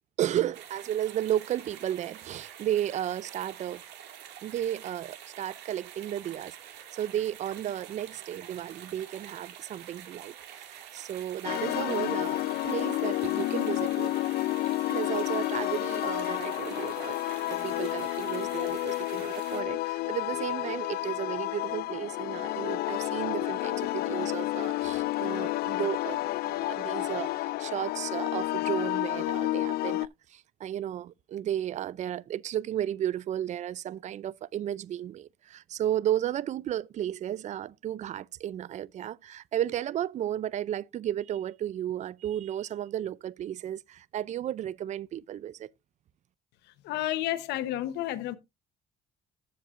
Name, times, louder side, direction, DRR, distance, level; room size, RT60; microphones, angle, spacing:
voice 1, 0.2-3.8 4.4-14.1 14.9-26.2 26.4-45.7, right 11 dB, 45° right, 0.4 m, -33 dB
sound 1, 0.5-19.6, right 10 dB, 80° right, 2.2 m, -47 dB
sound 2, 11.4-30.1, left 17 dB, 65° left, 0.4 m, -30 dB
voice 2, 46.8-48.4, left 14 dB, 85° left, 1.0 m, -31 dB
13.5 x 7.3 x 2.5 m
cardioid pair, 110°, 17 cm